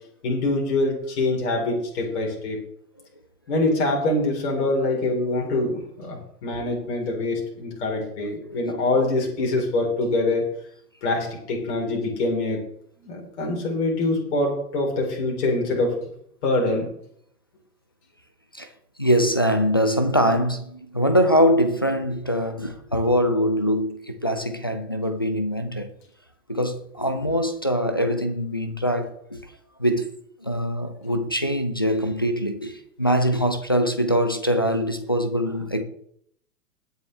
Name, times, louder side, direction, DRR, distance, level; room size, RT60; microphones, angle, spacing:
voice 1, 0.2-2.6 3.5-10.4 11.0-12.6 13.0-15.9 16.4-16.9, left 2 dB, 45° left, 4.1 m, -24 dB
voice 2, 8.2-9.1 18.5-18.7 19.0-25.9 26.5-29.4 29.8-30.2 30.4-35.8, equal, 20° left, 0.3 m, -23 dB
20.5 x 6.9 x 3.3 m
figure-of-eight pair, 110°, 47 cm